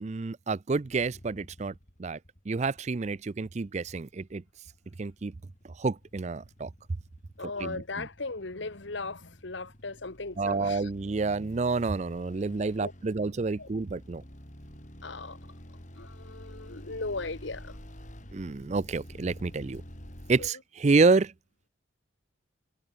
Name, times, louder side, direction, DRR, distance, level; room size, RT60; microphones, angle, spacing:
voice 1, 0.0-1.7 2.0-2.2 2.5-4.4 5.0-5.3 5.8-6.7 7.6-8.1 10.4-14.2 18.3-19.8 20.3-21.3, right 3 dB, 35° right, 0.4 m, -28 dB
sound 1, 0.8-20.5, equal, 40° left, 5.2 m, -49 dB
voice 2, 7.4-10.9 12.8-12.9 13.6-13.7 15.0-15.4 16.0-17.8 20.4-20.5, left 3 dB, 65° left, 1.5 m, -37 dB
head